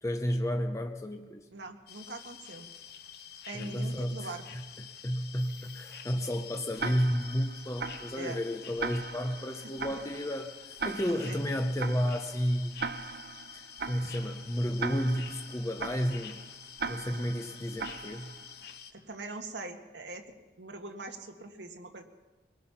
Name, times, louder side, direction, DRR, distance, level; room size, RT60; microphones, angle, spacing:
voice 1, 0.0-1.4 3.5-12.7 13.5-16.4 16.8-18.3, equal, 15° left, 5 dB, 0.8 m, -32 dB
voice 2, 1.5-2.7 3.5-4.4 8.1-8.4 9.6-10.0 11.3-11.4 18.9-20.2 20.6-22.0, right 2 dB, 80° right, 4 dB, 1.8 m, -42 dB
sound 1, 1.9-18.9, left 8 dB, 60° left, 1.2 m, -48 dB
Tick-tock, 6.8-18.6, right 5 dB, 60° right, 0.8 m, -40 dB
25.0 x 19.5 x 5.9 m, 1.3 s
head